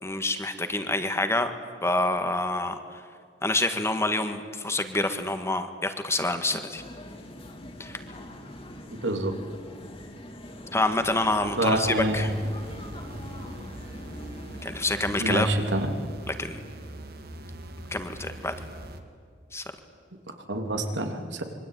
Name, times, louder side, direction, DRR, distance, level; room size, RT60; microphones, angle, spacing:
voice 1, 0.0-1.5 1.8-2.8 3.4-6.8 7.8-8.0 10.7-12.3 14.6-15.5 16.4-16.6 17.9-18.5 19.5-19.6, left 2 dB, 15° left, 8 dB, 1.8 m, -27 dB
sound 1, 6.7-15.2, left 1 dB, 30° left, 3.0 m, -43 dB
voice 2, 8.9-9.3 11.6-12.4 15.2-15.9 20.5-21.5, right 1 dB, 80° right, 5 dB, 3.1 m, -27 dB
sound 2, 11.6-19.0, right 1 dB, 60° right, 2.3 m, -42 dB
26.0 x 23.0 x 9.4 m, 2.1 s
head